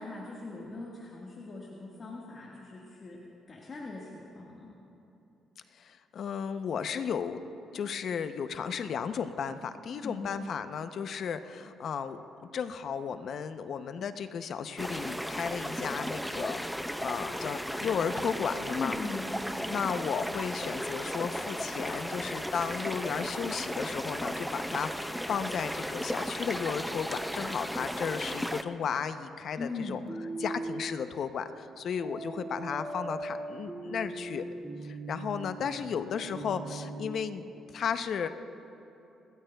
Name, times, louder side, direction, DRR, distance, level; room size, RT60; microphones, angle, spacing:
voice 1, 0.0-4.8 10.0-10.3 18.7-19.3 29.6-30.0, left 3 dB, 40° left, -4 dB, 1.6 m, -40 dB
voice 2, 5.8-7.4 7.7-12.2 12.5-19.0 19.7-30.0 30.4-34.5 34.8-37.4 37.7-38.3, left 7 dB, 60° left, 10 dB, 0.6 m, -34 dB
sound 1, 14.8-28.6, equal, ahead, 0.5 m, -35 dB
sound 2, 30.1-30.9 32.0-37.0, right 2 dB, 20° right, 2.0 m, -39 dB
30.0 x 12.5 x 2.3 m, 2.9 s
cardioid pair, 90°, 0 cm